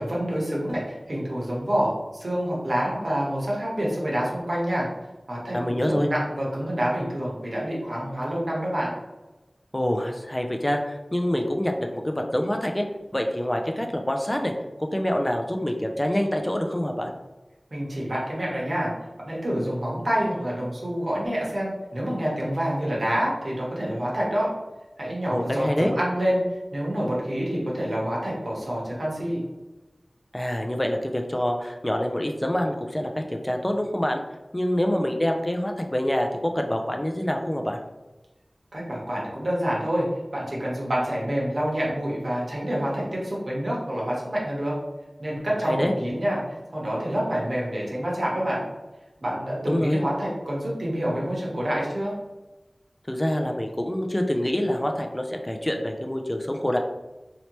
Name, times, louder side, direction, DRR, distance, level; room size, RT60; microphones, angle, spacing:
voice 1, 0.0-4.9 5.3-8.9 17.7-18.9 19.2-24.5 25.0-26.4 26.7-29.4 38.7-40.1 40.3-44.8 45.2-46.4 46.7-48.6 49.2-52.1, equal, 75° right, -5 dB, 1.1 m, -27 dB
voice 2, 5.5-6.1 9.7-12.9 13.1-14.5 14.8-17.1 25.3-25.9 30.3-34.2 34.5-37.8 45.6-45.9 49.7-50.0 53.1-56.8, left 1 dB, 20° left, 3 dB, 0.4 m, -26 dB
3.2 x 2.8 x 2.9 m, 1.1 s
wide cardioid pair, 55°, 0 cm